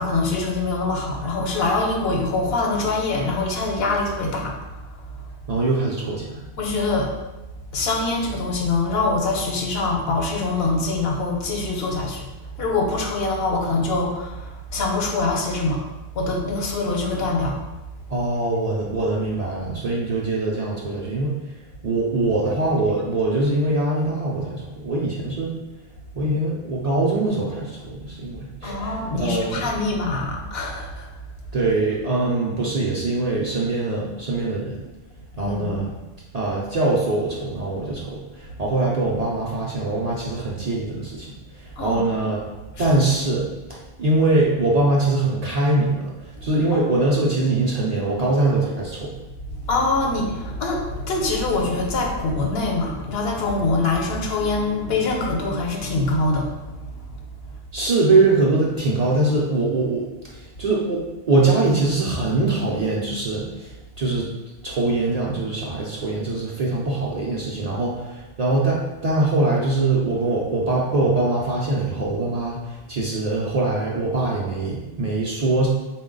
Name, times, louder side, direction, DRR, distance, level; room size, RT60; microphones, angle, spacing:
voice 1, 0.0-5.1 6.6-7.1 7.7-12.3 12.6-15.8 16.1-17.6 28.6-31.1 35.3-35.9 41.8-42.0 42.8-42.9 46.4-46.5 46.7-46.9 49.7-57.0, left 3 dB, 70° left, 1 dB, 0.8 m, -24 dB
voice 2, 5.5-6.4 18.1-21.3 21.8-25.5 26.1-29.7 31.5-34.8 35.4-35.9 36.3-41.3 41.6-42.4 42.8-46.0 46.4-49.1 57.7-64.3 64.6-72.6 72.9-75.7, right 2 dB, 45° right, -4 dB, 0.5 m, -22 dB
3.8 x 2.2 x 3.7 m, 1.1 s
omnidirectional pair, 1.1 m